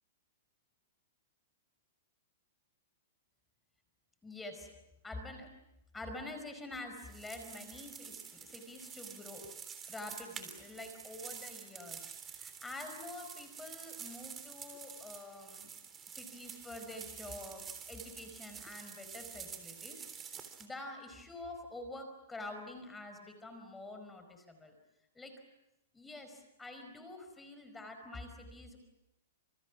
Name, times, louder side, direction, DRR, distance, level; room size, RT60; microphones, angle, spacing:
voice 1, 4.2-4.7 5.0-5.5 5.9-9.5 9.9-15.7 16.1-24.8 25.1-25.4 25.9-28.8, left 2 dB, 10° left, 6 dB, 4.9 m, -47 dB
sound 1, 7.0-20.7, right 7 dB, 20° right, 3.5 m, -48 dB
28.5 x 27.5 x 6.1 m, 0.89 s
hypercardioid pair, 140°, 0 cm